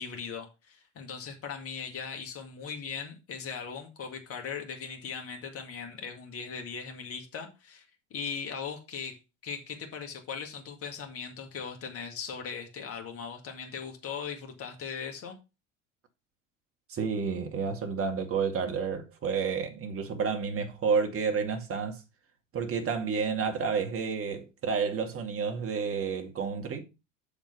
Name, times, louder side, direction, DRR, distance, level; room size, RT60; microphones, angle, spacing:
voice 1, 0.0-15.4, left 6 dB, 40° left, 2.1 m, -39 dB
voice 2, 16.9-22.0 22.5-26.8, right 5 dB, 35° right, 2.2 m, -30 dB
7.1 x 5.3 x 5.4 m
hypercardioid pair, 75°, 36 cm